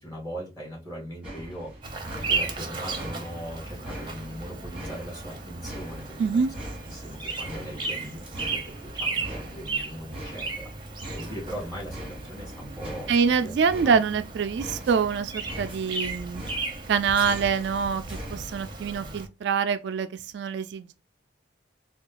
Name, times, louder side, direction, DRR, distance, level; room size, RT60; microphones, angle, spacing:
voice 1, 0.0-1.7 2.1-6.2 6.4-6.5 6.8-13.5 13.8-14.0, equal, 20° left, 1.7 m, -39 dB
sound 1, 1.2-18.9, right 1 dB, 5° right, 1.1 m, -42 dB
Bird vocalization bird call bird song, 1.8-19.3, right 4 dB, 25° right, 0.7 m, -35 dB
voice 2, 6.2-6.5 13.1-16.4 16.9-20.9, right 6 dB, 65° right, 0.3 m, -25 dB
3.6 x 2.3 x 2.9 m
head